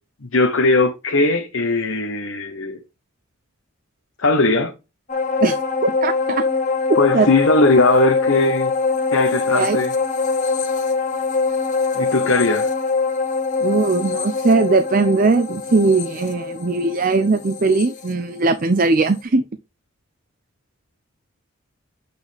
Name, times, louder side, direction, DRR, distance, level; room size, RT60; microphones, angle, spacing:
voice 1, 0.3-2.8 4.2-4.7 6.9-8.7 9.1-9.9 11.9-12.7, left 2 dB, 75° left, 1.0 m, -18 dB
sound 1, 5.1-18.8 19.2-19.3, left 4 dB, 35° left, 1.4 m, -23 dB
voice 2, 5.8-6.4 7.1-7.3 9.5-9.8 13.6-19.4, right 3 dB, 40° right, 0.5 m, -19 dB
8.1 x 4.3 x 3.5 m
head